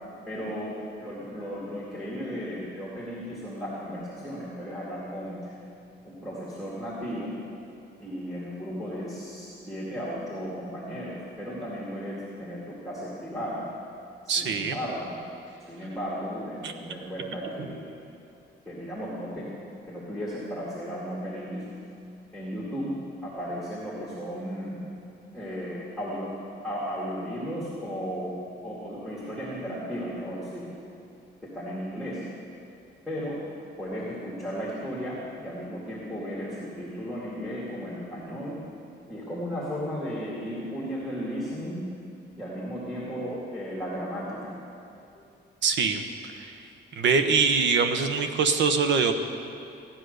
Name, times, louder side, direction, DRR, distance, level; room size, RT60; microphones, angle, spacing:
voice 1, 0.3-5.5 6.0-7.3 8.0-13.6 14.2-15.2 15.7-18.0 18.7-19.5 19.9-21.7 22.3-22.9 23.2-24.8 25.3-26.3 26.6-28.3 28.6-30.7 31.4-32.2 33.1-33.4 33.8-38.6 39.1-41.9 42.4-44.5 45.1-45.2, equal, ahead, -8 dB, 2.3 m, -35 dB
voice 2, 14.3-14.8 16.6-16.7 45.6-46.0 46.4-46.5 47.0-49.1, right 5 dB, 75° right, 7 dB, 1.1 m, -23 dB
16.0 x 10.5 x 6.6 m, 2.6 s
cardioid pair, 165°, 19 cm